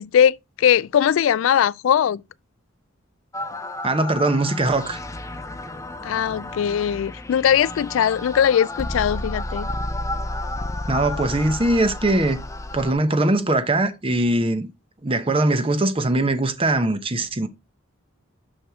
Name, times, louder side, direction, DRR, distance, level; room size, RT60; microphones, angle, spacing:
voice 1, 0.0-2.2 6.0-9.7, left 9 dB, 70° left, 0.3 m, -20 dB
sound 1, 3.3-12.9, left 2 dB, 15° left, 0.6 m, -32 dB
voice 2, 3.8-5.0 10.9-12.4 12.7-14.7 15.0-17.5, right 2 dB, 25° right, 0.8 m, -21 dB
6.4 x 6.1 x 3.6 m
head